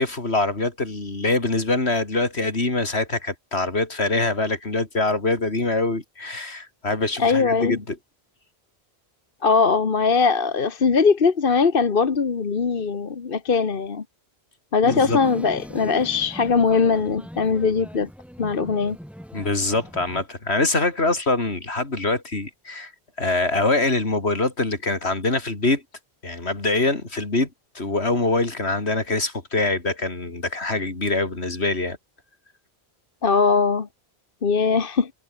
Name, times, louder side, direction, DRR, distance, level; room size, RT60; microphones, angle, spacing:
voice 1, 0.0-8.0 14.8-15.2 19.3-22.9 23.2-25.8 26.2-27.5 27.7-32.0, left 2 dB, 80° left, 3.8 m, -24 dB
voice 2, 7.2-7.8 9.4-14.0 14.7-18.1 18.4-19.0 33.2-33.9 34.4-35.1, left 5 dB, 55° left, 1.4 m, -20 dB
sound 1, 14.9-20.2, equal, ahead, 7.8 m, -40 dB
omnidirectional pair, 1.1 m